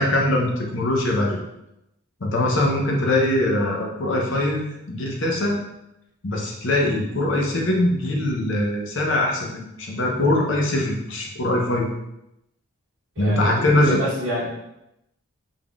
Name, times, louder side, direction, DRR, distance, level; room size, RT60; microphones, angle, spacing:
voice 1, 0.0-1.4 2.2-5.6 6.2-11.9 13.2-14.0, left 1 dB, 60° left, -1 dB, 0.7 m, -22 dB
voice 2, 13.2-14.6, equal, 70° right, -10 dB, 1.2 m, -26 dB
3.7 x 3.6 x 2.3 m, 0.86 s
head